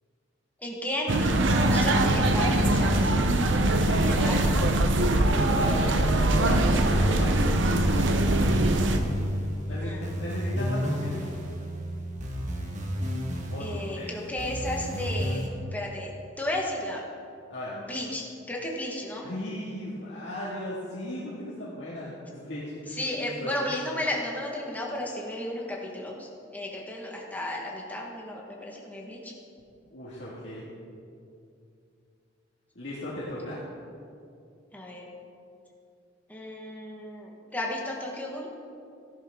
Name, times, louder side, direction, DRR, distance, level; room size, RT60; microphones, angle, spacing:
voice 1, 0.6-3.1 4.1-4.4 9.8-10.0 13.6-15.4 15.7-16.1 16.4-17.0 17.8-19.2 23.0-26.3 26.5-29.3 34.7-35.0 36.3-38.5, left 1 dB, 10° left, -2 dB, 1.5 m, -33 dB
sound 1, 1.1-9.0, right 1 dB, 75° right, 0.8 m, -22 dB
voice 2, 3.7-4.1 5.1-7.7 9.7-11.2 13.5-14.1 17.5-17.8 19.2-23.5 29.9-30.6 32.7-33.6, left 1 dB, 70° left, -8 dB, 2.2 m, -37 dB
sound 2, 6.7-15.5, equal, 40° right, 1.6 m, -32 dB
14.0 x 11.0 x 3.7 m, 2.5 s
head